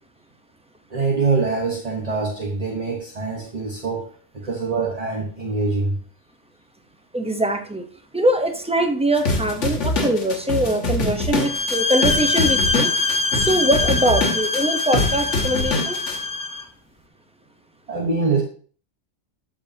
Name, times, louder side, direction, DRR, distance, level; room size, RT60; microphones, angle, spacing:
voice 1, 0.9-4.0 4.3-6.0 17.9-18.4, right 4 dB, 35° right, 0 dB, 1.2 m, -24 dB
voice 2, 7.1-7.8 8.1-12.9 13.3-16.0, right 1 dB, 5° right, 4 dB, 0.6 m, -22 dB
sound 1, 9.2-16.2, left 2 dB, 80° left, 1.6 m, -24 dB
sound 2, 11.4-16.6, left 3 dB, 35° left, 0.3 m, -23 dB
12.5 x 5.0 x 2.8 m, 0.43 s
omnidirectional pair, 1.2 m